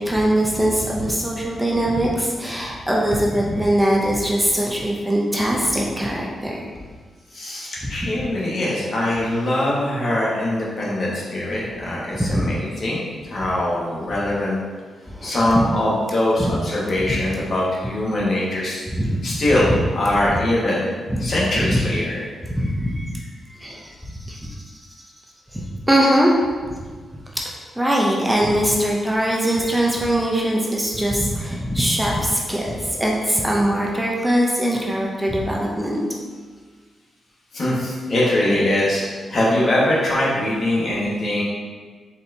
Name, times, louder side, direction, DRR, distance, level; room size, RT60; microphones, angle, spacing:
voice 1, 0.0-6.7 7.8-7.9 12.2-12.5 15.1-15.6 16.4-16.5 17.1-17.2 18.9-19.2 20.3-20.4 21.1-21.3 21.7-21.8 22.6-23.2 23.6-23.9 24.3-24.6 25.5-26.5 27.3-27.4 27.8-36.0, equal, 5° right, -3 dB, 0.5 m, -21 dB
voice 2, 7.3-14.6 15.2-20.9 21.2-22.2 37.5-41.4, left 1 dB, 55° left, -6 dB, 1.3 m, -22 dB
4.3 x 4.0 x 2.7 m, 1.5 s
cardioid pair, 100°, 0 cm